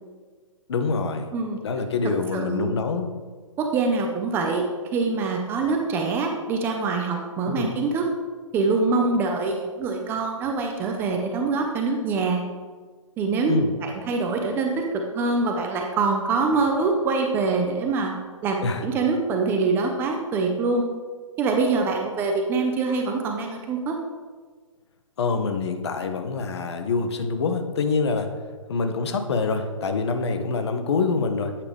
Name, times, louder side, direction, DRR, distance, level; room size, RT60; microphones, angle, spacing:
voice 1, 0.7-1.3 1.6-3.1 7.5-7.7 13.5-13.7 18.6-18.8 25.2-28.3 28.7-31.5, left 4 dB, 55° left, 7 dB, 0.7 m, -25 dB
voice 2, 2.3-2.7 3.6-4.6 4.9-8.1 8.5-12.4 13.2-13.5 13.8-18.1 18.4-20.8 21.4-24.0, right 4 dB, 15° right, 3 dB, 0.4 m, -24 dB
8.4 x 4.7 x 3.4 m, 1.5 s
figure-of-eight pair, 125°, 17 cm